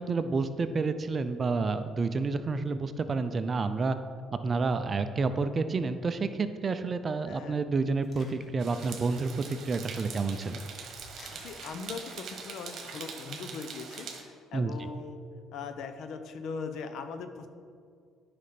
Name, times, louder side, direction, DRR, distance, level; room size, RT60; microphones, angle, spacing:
voice 1, 0.0-4.0 4.4-10.5 14.5-14.9, right 4 dB, 35° right, 10 dB, 0.6 m, -29 dB
voice 2, 7.3-7.6 11.3-15.2 15.5-17.5, left 5 dB, 70° left, 8 dB, 0.8 m, -40 dB
sound 1, 8.0-12.7, left 2 dB, 45° left, 1.7 m, -56 dB
sound 2, 8.6-14.2, right 6 dB, 60° right, 1.2 m, -43 dB
9.7 x 5.2 x 5.9 m, 2.2 s
cardioid pair, 85°, 0 cm